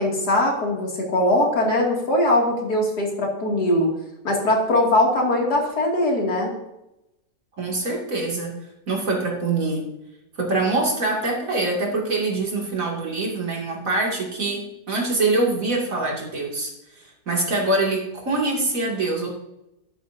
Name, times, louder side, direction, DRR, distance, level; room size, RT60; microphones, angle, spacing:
voice 1, 0.0-3.9 4.2-6.5, left 1 dB, 85° left, -1 dB, 3.0 m, -21 dB
voice 2, 7.6-8.5 8.9-9.8 10.4-19.3, right 2 dB, 55° right, -1 dB, 2.9 m, -24 dB
11.5 x 11.0 x 2.7 m, 0.88 s
omnidirectional pair, 1.7 m